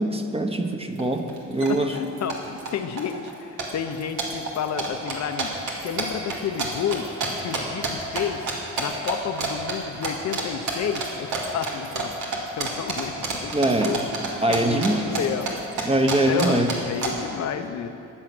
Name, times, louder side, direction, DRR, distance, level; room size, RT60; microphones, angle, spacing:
voice 1, 0.0-2.0 13.5-14.0 14.4-15.1 15.8-16.7, right 1 dB, 20° right, 5 dB, 1.1 m, -23 dB
sound 1, 1.0-1.1 1.3-1.7 1.9-2.7 3.0-3.3 3.6-8.2 8.5-9.1 9.4-9.8 10.0-10.4 10.7-14.9 15.1-17.1, right 4 dB, 85° right, 2.4 m, -28 dB
voice 2, 1.6-5.5 5.8-7.1 7.4-8.5 8.8-14.0 14.5-15.6 16.2-17.9, left 8 dB, 60° left, 7 dB, 0.9 m, -31 dB
14.5 x 9.8 x 6.2 m, 2.6 s
cardioid pair, 90°, 30 cm